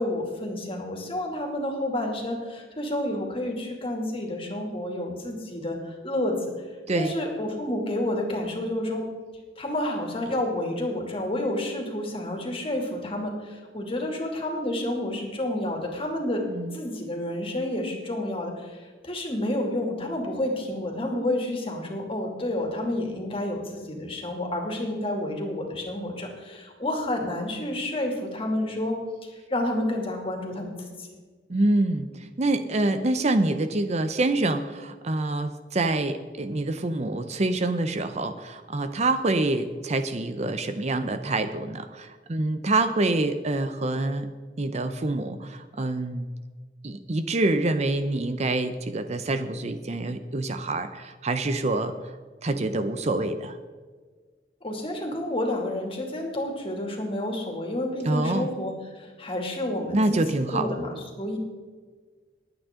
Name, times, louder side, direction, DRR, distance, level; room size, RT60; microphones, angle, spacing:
voice 1, 0.0-6.5 6.9-9.0 9.6-16.5 16.7-31.1 54.6-60.2 60.5-61.4, left 1 dB, 30° left, 2 dB, 2.5 m, -30 dB
voice 2, 31.5-44.3 44.6-46.3 46.8-52.1 52.4-53.6 58.0-58.5 59.9-60.7, right 2 dB, 40° right, 9 dB, 0.7 m, -26 dB
21.0 x 9.0 x 3.7 m, 1.5 s
head